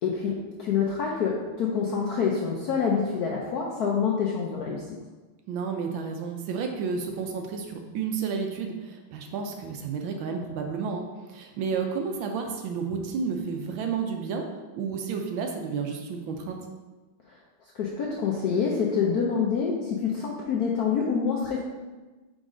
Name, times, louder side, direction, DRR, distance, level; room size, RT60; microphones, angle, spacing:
voice 1, 0.0-4.8 17.3-17.4 17.7-21.6, left 6 dB, 70° left, -2 dB, 0.9 m, -26 dB
voice 2, 5.5-14.5 14.7-16.6, right 5 dB, 75° right, 3 dB, 1.3 m, -31 dB
5.0 x 3.9 x 4.9 m, 1.2 s
omnidirectional pair, 2.3 m